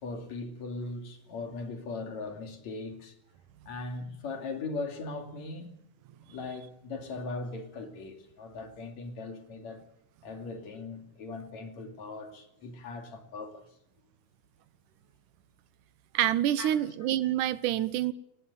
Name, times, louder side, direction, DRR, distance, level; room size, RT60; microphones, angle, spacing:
voice 1, 0.0-3.1 3.7-5.7 6.2-9.8 10.2-13.7 16.6-16.9, left 3 dB, 65° left, 3.8 m, -39 dB
voice 2, 16.1-18.1, right 12 dB, 90° right, 2.5 m, -27 dB
19.5 x 17.0 x 9.6 m
omnidirectional pair, 3.5 m